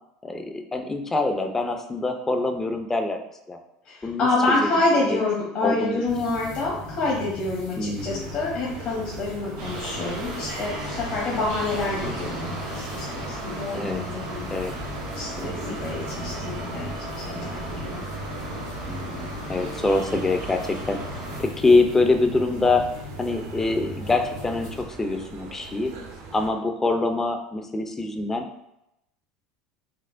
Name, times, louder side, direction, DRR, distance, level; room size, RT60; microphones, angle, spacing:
voice 1, 0.2-3.2 3.5-3.6 4.0-5.2 5.6-6.0 7.8-8.4 13.7-14.0 14.5-14.7 15.4-15.8 18.9-21.0 21.4-22.9 23.2-25.9 26.3-28.5, left 3 dB, 15° left, 5 dB, 0.4 m, -25 dB
voice 2, 3.8-14.5 15.1-16.9 17.2-18.0, left 2 dB, 45° left, -6 dB, 0.9 m, -27 dB
sound 1, 6.1-24.8, left 2 dB, 75° left, 1.0 m, -39 dB
sound 2, 8.0-26.5, right 4 dB, 70° right, 0.6 m, -42 dB
sound 3, 9.6-21.4, right 1 dB, 85° right, 1.2 m, -36 dB
4.3 x 2.1 x 2.5 m, 0.83 s
supercardioid pair, 105°, 2 cm